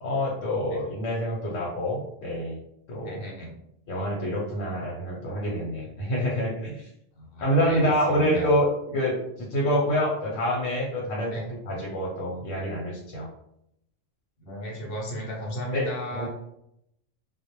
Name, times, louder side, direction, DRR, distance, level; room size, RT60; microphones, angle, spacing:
voice 1, 0.0-2.6 2.9-3.2 3.9-6.9 7.4-9.2 9.5-11.3 11.7-13.3 15.7-16.3, equal, 85° left, -3 dB, 1.0 m, -26 dB
voice 2, 3.0-3.6 7.1-8.5 11.3-11.4 14.4-16.3, equal, 55° left, -2 dB, 0.8 m, -35 dB
2.1 x 2.1 x 2.9 m, 0.78 s
omnidirectional pair, 1.3 m